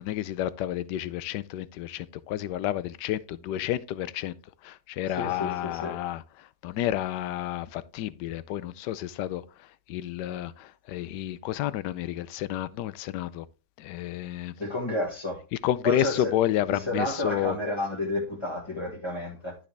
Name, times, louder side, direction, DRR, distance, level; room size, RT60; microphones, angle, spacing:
voice 1, 0.0-4.3 4.6-6.2 6.6-9.4 9.9-10.5 10.9-13.4 13.8-14.5 15.6-17.6, left 12 dB, 85° left, 1.2 m, -30 dB
voice 2, 5.1-6.0 14.6-15.4 15.8-16.3 16.7-19.6, left 1 dB, 15° left, 1.7 m, -31 dB
12.0 x 5.1 x 3.4 m
omnidirectional pair, 1.8 m